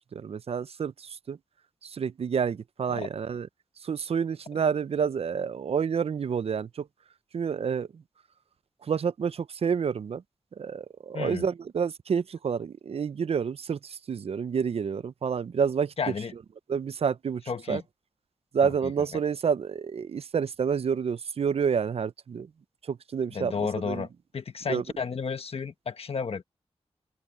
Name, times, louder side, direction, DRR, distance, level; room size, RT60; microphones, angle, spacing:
voice 1, 0.1-1.4 1.8-3.5 3.8-6.9 7.3-8.0 8.8-10.2 10.6-15.9 16.7-17.4 17.7-17.8 18.5-22.5 22.8-24.1 24.7-24.8, right 6 dB, 70° right, 0.5 m, -29 dB
voice 2, 11.1-11.5 16.0-16.3 17.5-17.8 18.6-18.7 19.1-19.2 23.3-24.1 24.3-26.4, left 5 dB, 65° left, 1.2 m, -32 dB
open air
wide cardioid pair, 105°, 11 cm